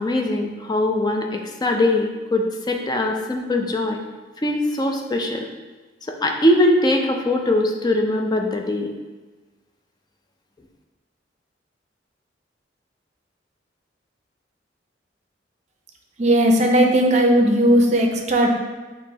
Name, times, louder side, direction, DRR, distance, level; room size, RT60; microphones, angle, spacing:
voice 1, 0.0-4.0 4.4-5.5 6.1-8.9, left 1 dB, 25° left, 2 dB, 0.4 m, -21 dB
voice 2, 16.2-18.5, right 1 dB, 40° right, 2 dB, 0.5 m, -17 dB
6.5 x 3.0 x 2.7 m, 1.3 s
head